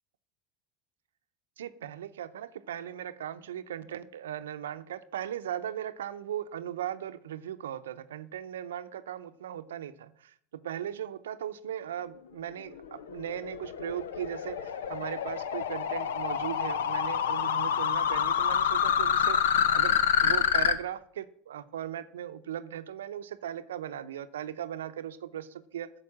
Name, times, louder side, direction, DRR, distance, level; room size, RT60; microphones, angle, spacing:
voice 1, 1.6-20.0 20.2-25.9, right 10 dB, 85° right, 11 dB, 0.6 m, -38 dB
sound 1, 12.7-20.7, left 8 dB, 85° left, 0.8 m, -27 dB
8.8 x 6.8 x 8.5 m, 0.64 s
hypercardioid pair, 85°, 0 cm